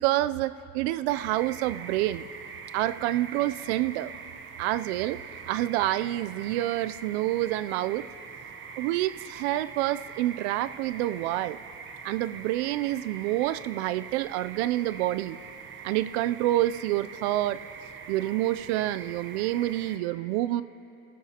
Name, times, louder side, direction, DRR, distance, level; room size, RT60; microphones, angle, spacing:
voice 1, 0.0-2.3 2.7-4.1 4.6-5.2 5.5-8.1 8.8-11.6 12.0-15.4 15.8-17.6 18.1-20.6, right 15 dB, 85° right, 15 dB, 0.5 m, -28 dB
sound 1, 1.1-20.0, right 6 dB, 40° right, 0.9 m, -43 dB
20.5 x 14.0 x 2.9 m, 2.8 s
supercardioid pair, 110°, 32 cm